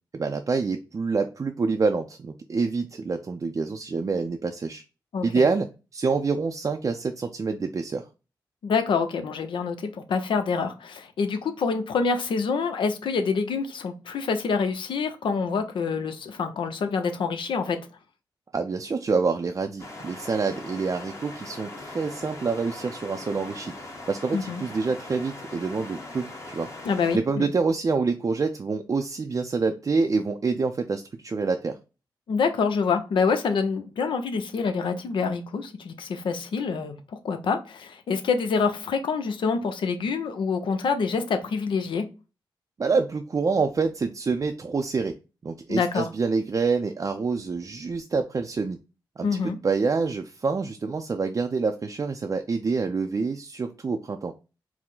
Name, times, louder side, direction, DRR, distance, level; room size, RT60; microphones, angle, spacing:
voice 1, 0.1-4.8 5.2-8.1 18.5-26.7 27.1-31.8 42.8-45.2 45.4-48.8 49.2-54.3, right 4 dB, 40° right, 0.4 m, -27 dB
voice 2, 5.1-5.4 8.6-17.8 24.3-24.6 26.8-27.5 32.3-42.1 45.7-46.1 49.2-49.6, left 5 dB, 80° left, 0.7 m, -26 dB
sound 1, 19.8-27.2, left 2 dB, 35° left, 1.2 m, -41 dB
4.6 x 2.1 x 3.7 m
cardioid pair, 70°, 8 cm